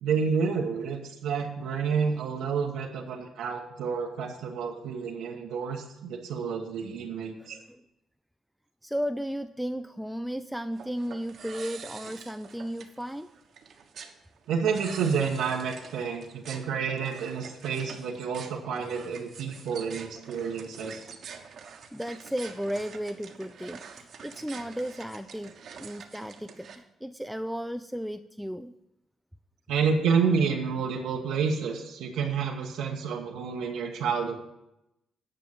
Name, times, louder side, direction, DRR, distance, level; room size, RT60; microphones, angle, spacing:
voice 1, 0.0-7.6 14.5-21.1 29.7-34.4, right 6 dB, 90° right, -1 dB, 1.3 m, -29 dB
voice 2, 7.4-7.8 8.8-13.3 21.9-28.7, equal, ahead, 9 dB, 0.4 m, -35 dB
sound 1, 10.7-26.8, right 6 dB, 60° right, 1.2 m, -46 dB
10.0 x 5.2 x 7.6 m, 0.86 s
cardioid pair, 90°, 0 cm